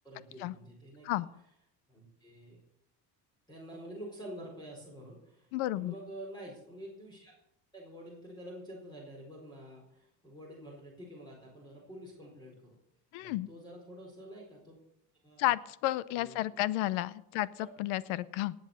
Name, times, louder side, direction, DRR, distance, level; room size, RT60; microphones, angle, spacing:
voice 1, 0.0-1.2 1.9-2.6 3.5-7.3 7.7-12.8 13.2-14.8 15.2-15.5 16.2-16.6, right 1 dB, 10° left, -2 dB, 4.5 m, -48 dB
voice 2, 5.5-6.0 13.1-13.5 15.4-18.5, left 16 dB, 85° left, 19 dB, 0.8 m, -32 dB
19.0 x 8.2 x 6.7 m, 0.78 s
cardioid pair, 135°, 47 cm